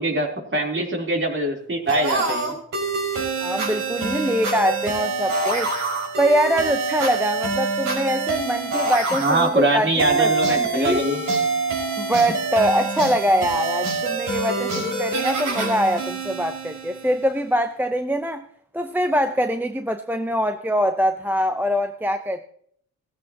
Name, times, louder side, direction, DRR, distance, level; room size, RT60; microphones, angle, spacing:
voice 1, 0.0-2.5 9.2-11.2, right 1 dB, 35° right, 0 dB, 3.7 m, -23 dB
sound 1, 1.9-17.4, right 3 dB, 70° right, 5.8 m, -26 dB
voice 2, 3.4-5.7 6.2-9.9 10.2-11.0 12.0-18.4 18.7-22.4, equal, 5° right, 6 dB, 0.8 m, -23 dB
17.0 x 14.5 x 3.0 m, 0.64 s
cardioid pair, 85°, 33 cm